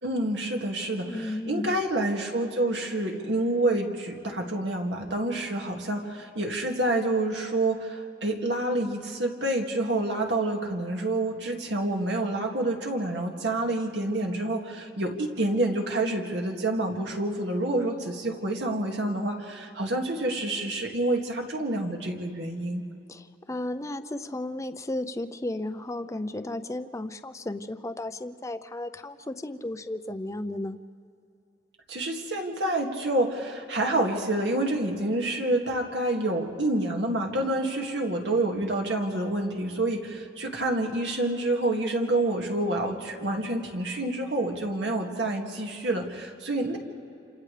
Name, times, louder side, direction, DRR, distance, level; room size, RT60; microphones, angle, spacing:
voice 1, 0.0-22.8 31.9-46.8, right 1 dB, 75° right, 1 dB, 2.2 m, -28 dB
voice 2, 1.1-1.7 17.8-18.1 23.1-30.8 37.6-38.0, left 1 dB, 15° left, 10 dB, 0.6 m, -34 dB
29.5 x 27.0 x 3.4 m, 2.6 s
head